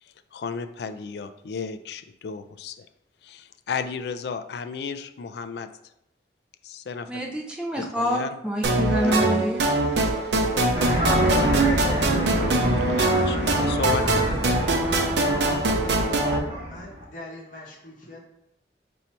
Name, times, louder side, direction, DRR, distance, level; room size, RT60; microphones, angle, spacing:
voice 1, 0.0-2.9 3.2-5.7 6.6-7.2 7.7-8.4 9.0-9.4 10.9-11.2 11.9-14.6, left 5 dB, 70° left, 11 dB, 0.3 m, -34 dB
voice 2, 7.1-9.6, equal, 5° right, -1 dB, 0.5 m, -26 dB
sound 1, 8.6-16.4, right 2 dB, 75° right, 0.6 m, -23 dB
sound 2, 10.7-17.0, equal, 35° right, 1.3 m, -27 dB
voice 3, 16.6-18.2, left 1 dB, 45° left, -1 dB, 0.9 m, -42 dB
4.3 x 2.6 x 4.4 m, 0.81 s
head